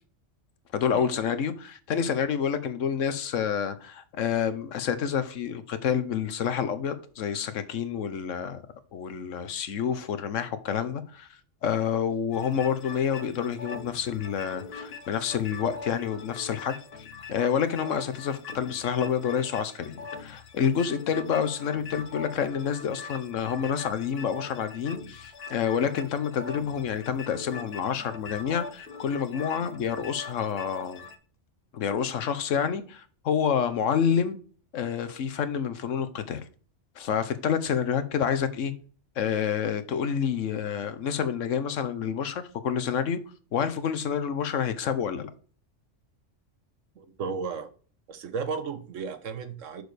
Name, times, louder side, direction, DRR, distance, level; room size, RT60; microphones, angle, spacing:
voice 1, 0.7-8.6 8.9-11.3 11.6-16.8 17.3-31.0 31.7-34.4 34.7-36.4 37.0-38.7 39.2-43.2 43.5-45.3, left 7 dB, 80° left, 1.2 m, -28 dB
sound 1, 12.3-31.2, left 5 dB, 55° left, 1.1 m, -42 dB
voice 2, 47.0-47.7 48.1-49.8, right 5 dB, 85° right, 1.3 m, -34 dB
6.6 x 6.2 x 3.3 m
omnidirectional pair, 1.3 m